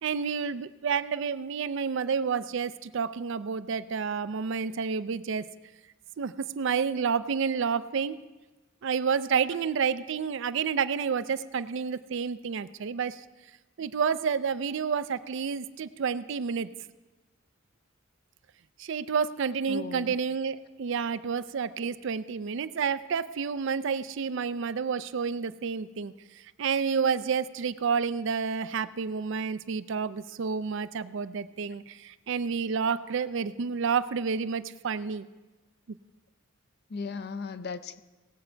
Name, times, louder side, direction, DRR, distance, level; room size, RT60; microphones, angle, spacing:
voice 1, 0.0-5.4 6.2-8.2 8.8-13.2 13.8-16.7 18.8-26.1 26.6-35.3, right 6 dB, 60° right, 14 dB, 0.4 m, -29 dB
voice 2, 19.7-20.2 27.6-27.7 36.9-38.0, left 4 dB, 50° left, 12 dB, 0.5 m, -37 dB
18.5 x 7.7 x 4.5 m, 1.2 s
head